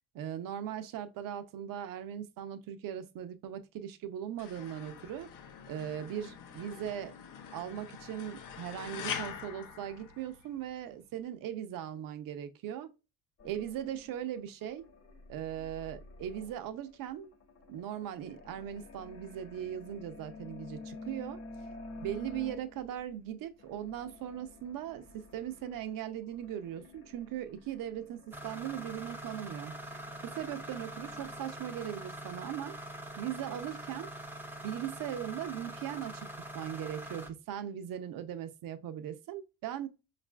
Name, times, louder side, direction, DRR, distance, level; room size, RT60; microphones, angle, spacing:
voice 1, 0.1-5.3 5.7-7.2 7.5-12.9 13.4-14.9 15.3-17.3 17.7-21.4 22.0-29.7 30.2-32.8 33.2-34.1 34.6-36.3 36.5-39.9, right 10 dB, 60° right, 0.6 m, -39 dB
sound 1, 4.4-10.7, left 7 dB, 55° left, 0.7 m, -44 dB
sound 2, 13.4-23.1 23.6-31.4, left 2 dB, 40° left, 1.1 m, -50 dB
sound 3, 28.3-37.3, right 1 dB, 5° right, 0.5 m, -44 dB
5.1 x 2.4 x 2.2 m
cardioid pair, 125°, 39 cm